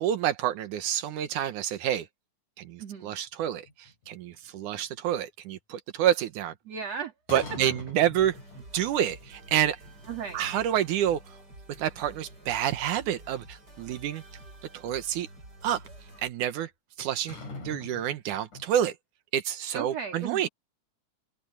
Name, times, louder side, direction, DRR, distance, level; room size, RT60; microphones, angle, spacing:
voice 1, 0.0-2.1 2.6-6.5 7.3-8.4 8.7-9.8 10.3-11.2 11.8-14.2 14.7-15.3 15.6-15.8 16.2-16.7 17.0-17.4 17.6-18.9 19.3-20.5, right 11 dB, 85° right, 2.6 m, -28 dB
voice 2, 2.8-3.2 6.6-7.6 10.1-10.4 19.7-20.5, right 6 dB, 55° right, 4.3 m, -36 dB
sound 1, 3.4-4.8 7.3-8.9 9.2-9.3 9.8-10.8 11.1-11.2 11.7-11.8 12.2-13.6 15.2-15.3 17.0-18.8, left 3 dB, 85° left, 7.2 m, -43 dB
sound 2, 8.2-16.3, right 1 dB, 30° right, 7.5 m, -49 dB
open air
omnidirectional pair, 3.5 m